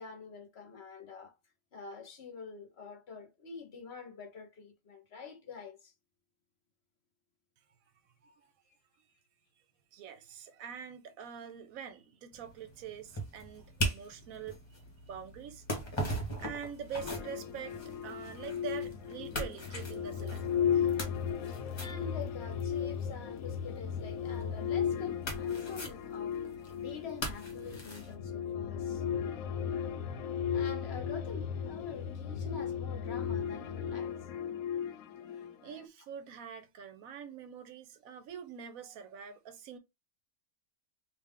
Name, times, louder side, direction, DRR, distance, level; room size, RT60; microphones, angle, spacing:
voice 1, 0.0-1.3 1.7-5.9 21.8-26.4 26.8-29.0 30.5-34.2 35.3-35.4, left 5 dB, 55° left, 1.0 m, -46 dB
voice 2, 9.9-15.6 16.4-20.9 35.6-39.8, right 7 dB, 85° right, 1.1 m, -45 dB
sound 1, 12.3-28.1, right 1 dB, 20° left, 1.0 m, -41 dB
sound 2, 17.0-35.9, left 8 dB, 80° left, 1.0 m, -35 dB
3.3 x 2.6 x 3.5 m
omnidirectional pair, 1.5 m